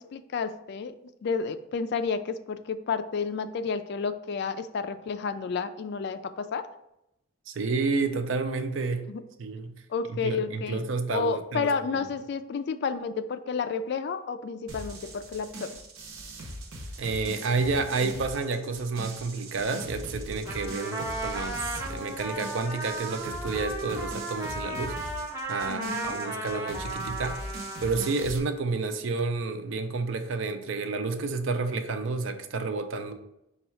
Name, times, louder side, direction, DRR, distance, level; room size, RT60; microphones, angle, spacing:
voice 1, 0.0-6.7 9.1-9.2 9.9-10.8 11.1-15.8 25.7-26.2, left 5 dB, 55° left, 11 dB, 0.3 m, -31 dB
voice 2, 7.5-9.1 9.4-9.8 10.1-12.1 17.0-25.0 25.5-33.1, right 4 dB, 65° right, 7 dB, 0.5 m, -30 dB
sound 1, 14.7-28.4, right 1 dB, 85° right, 0.9 m, -41 dB
Trumpet, 20.4-28.3, right 2 dB, 10° right, 0.6 m, -35 dB
5.3 x 2.3 x 4.2 m, 0.83 s
head